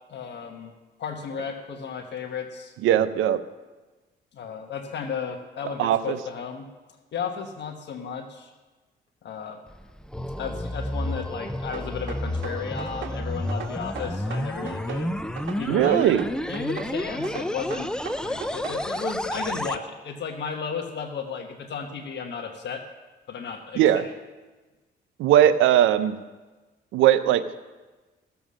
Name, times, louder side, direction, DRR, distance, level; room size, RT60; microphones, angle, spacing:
voice 1, 0.1-0.7 1.0-2.7 4.3-6.6 7.1-8.5 9.2-9.6 10.4-15.2 15.6-16.1 16.5-17.9 18.2-22.8 23.3-24.1, left 6 dB, 60° left, 4 dB, 1.2 m, -34 dB
voice 2, 2.8-3.4 5.8-6.2 15.7-16.3 23.8-24.0 25.2-26.1 26.9-27.4, right 11 dB, 90° right, 12 dB, 0.7 m, -19 dB
sound 1, 9.7-19.8, left 1 dB, 5° left, 0.5 m, -31 dB
sound 2, 11.7-13.2 13.5-15.1 15.4-16.9 17.2-18.8, right 7 dB, 70° right, 1.4 m, -38 dB
15.5 x 7.1 x 6.4 m, 1.2 s
cardioid pair, 90°, 20 cm